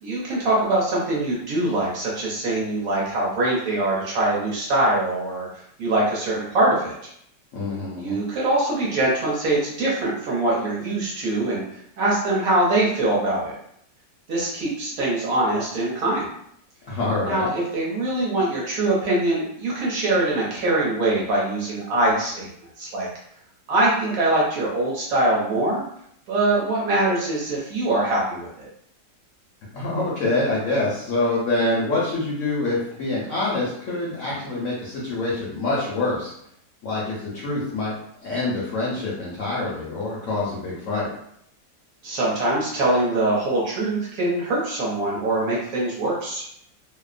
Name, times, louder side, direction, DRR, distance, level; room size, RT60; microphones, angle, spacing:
voice 1, 0.0-6.9 8.0-11.6 12.0-13.5 14.3-16.3 17.2-22.5 22.8-23.1 23.7-25.8 26.3-28.7 42.0-46.4, right 2 dB, 60° right, -5 dB, 1.0 m, -23 dB
voice 2, 7.5-8.2 16.9-17.5 29.7-36.3 36.8-37.9 38.2-41.1, left 2 dB, 65° left, -6 dB, 0.8 m, -25 dB
2.9 x 2.0 x 2.4 m, 0.70 s
omnidirectional pair, 1.9 m